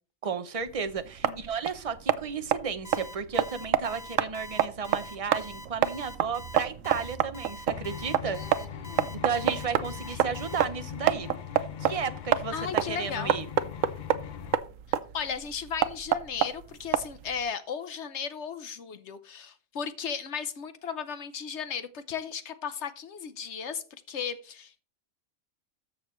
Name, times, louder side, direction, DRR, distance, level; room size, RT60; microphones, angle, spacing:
voice 1, 0.2-8.4 9.2-11.3 11.8-12.5 12.9-13.5, right 6 dB, 35° right, 0.6 m, -33 dB
sound 1, 0.6-17.4, right 10 dB, 70° right, 1.0 m, -29 dB
Alarm, 2.8-10.6, left 1 dB, 30° left, 1.1 m, -44 dB
sound 2, 7.7-14.5, left 10 dB, 80° left, 0.4 m, -40 dB
voice 2, 8.3-9.3 12.5-13.3 15.1-23.8 24.1-24.8, left 7 dB, 60° left, 1.0 m, -36 dB
13.0 x 6.6 x 3.1 m
omnidirectional pair, 1.4 m